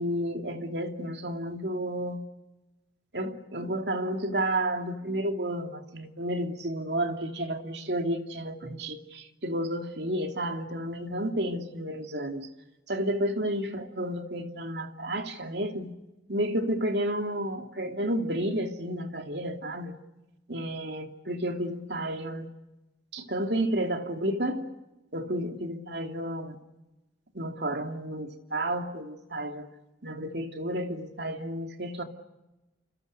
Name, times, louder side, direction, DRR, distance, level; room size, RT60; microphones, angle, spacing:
voice 1, 0.0-2.3 3.1-12.5 12.9-15.9 16.3-19.9 20.5-22.5 23.1-24.7 25.1-26.6 27.3-29.7 30.0-32.0, right 1 dB, 65° right, 5 dB, 2.7 m, -31 dB
29.5 x 29.0 x 6.6 m, 1.0 s
head